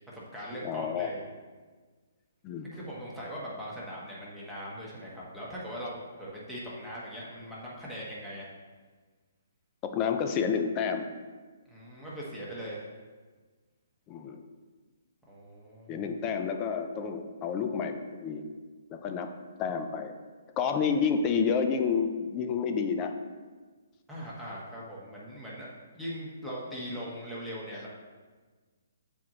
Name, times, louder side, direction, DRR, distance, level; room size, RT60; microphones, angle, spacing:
voice 1, 0.1-1.2 2.7-8.5 11.7-12.9 15.3-16.1 24.1-25.7 25.9-27.9, equal, ahead, -8 dB, 1.3 m, -40 dB
voice 2, 0.6-1.1 2.4-2.7 9.8-11.1 14.1-14.5 15.9-18.4 18.9-20.1 20.6-23.2, left 6 dB, 25° left, 7 dB, 0.5 m, -30 dB
7.4 x 4.6 x 3.8 m, 1.4 s
hypercardioid pair, 150°, 0 cm